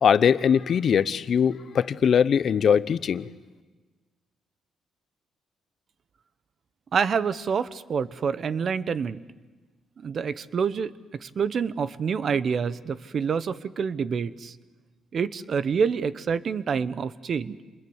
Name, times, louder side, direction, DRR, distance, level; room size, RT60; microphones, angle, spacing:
voice 1, 0.0-3.3, left 7 dB, 55° left, 15 dB, 0.8 m, -21 dB
voice 2, 6.9-9.2 10.0-10.9 11.2-14.6 15.1-17.6, right 6 dB, 50° right, 15 dB, 0.9 m, -27 dB
28.0 x 21.5 x 8.1 m, 1.3 s
cardioid pair, 90°, 0 cm